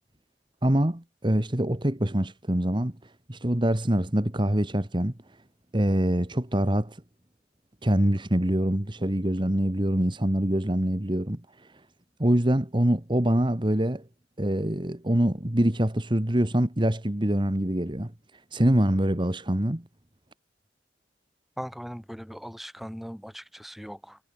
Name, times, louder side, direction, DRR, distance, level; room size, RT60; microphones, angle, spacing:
voice 1, 0.6-5.1 5.7-7.0 7.8-11.7 12.2-14.0 14.4-18.1 18.5-19.8, right 1 dB, 25° right, 1.5 m, -25 dB
voice 2, 21.6-24.2, equal, ahead, 4.3 m, -39 dB
head